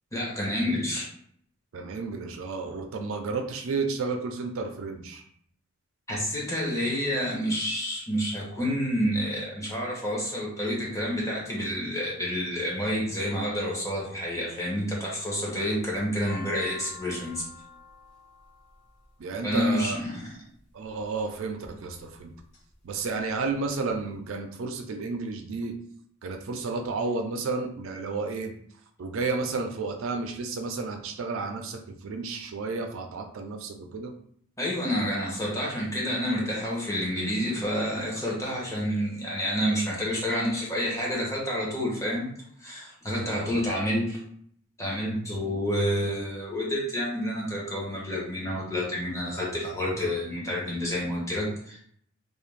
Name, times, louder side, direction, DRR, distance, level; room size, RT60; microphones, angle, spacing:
voice 1, 0.1-1.1 6.1-17.4 19.4-20.3 34.6-42.3 42.6-44.2 44.8-51.8, equal, 15° left, -4 dB, 0.7 m, -29 dB
voice 2, 1.7-5.2 19.2-20.0 20.7-22.3 22.8-25.7 26.2-28.5 29.0-34.2 43.1-43.6, right 4 dB, 70° right, 4 dB, 0.4 m, -32 dB
sound 1, 15.8-20.0 20.9-21.3 21.9-22.6 22.9-23.0 23.2-24.0, left 4 dB, 35° left, 1.2 m, -47 dB
2.4 x 2.2 x 3.1 m, 0.64 s
head